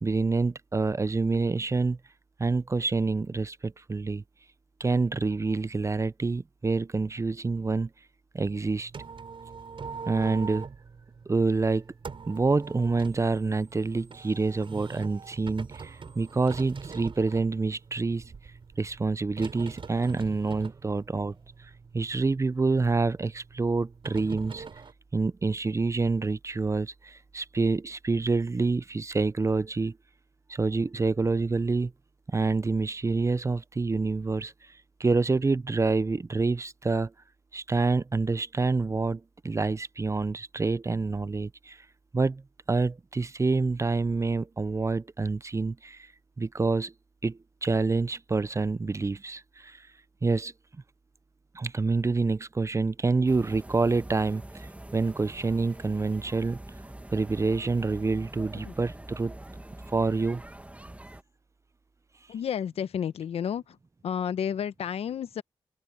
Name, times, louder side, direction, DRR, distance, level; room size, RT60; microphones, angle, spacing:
voice 1, 0.0-2.0 2.4-4.2 4.8-7.9 8.3-8.9 10.1-10.7 11.3-11.9 12.3-18.2 18.8-21.4 21.9-24.6 25.1-30.0 30.5-31.9 32.3-34.5 35.0-37.1 37.5-41.8 42.1-42.4 42.7-46.1 46.4-46.9 47.2-49.8 50.2-50.5 51.5-54.7 54.9-56.6 57.1-59.4 59.9-60.4, right 3 dB, 30° right, 0.6 m, -27 dB
sound 1, 8.5-24.9, right 5 dB, 55° right, 5.2 m, -44 dB
sound 2, 53.3-61.2, right 1 dB, 15° right, 1.8 m, -44 dB
voice 2, 62.3-63.8 64.0-65.4, left 8 dB, 75° left, 0.9 m, -31 dB
supercardioid pair, 50°, 10 cm